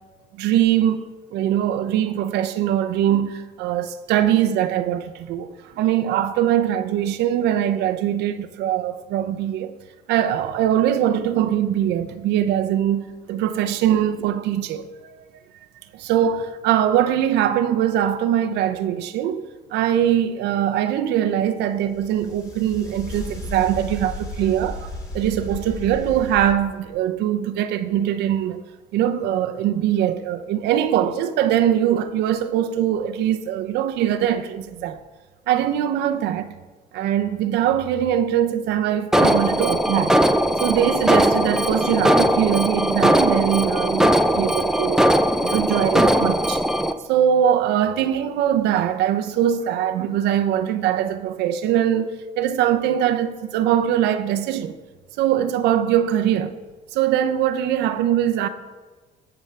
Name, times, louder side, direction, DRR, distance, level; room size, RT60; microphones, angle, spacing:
voice 1, 0.3-9.7 10.1-15.3 15.9-28.6 28.9-35.0 35.5-36.5 36.9-40.2 40.6-45.1 45.4-46.6 47.1-54.8 55.2-56.6 56.9-58.5, right 10 dB, 85° right, 0.7 m, -22 dB
sound 1, 21.9-26.5, left 1 dB, 20° left, 2.7 m, -34 dB
Alarm, 39.1-46.9, equal, 5° right, 0.5 m, -19 dB
18.5 x 6.9 x 3.3 m
cardioid pair, 110°, 17 cm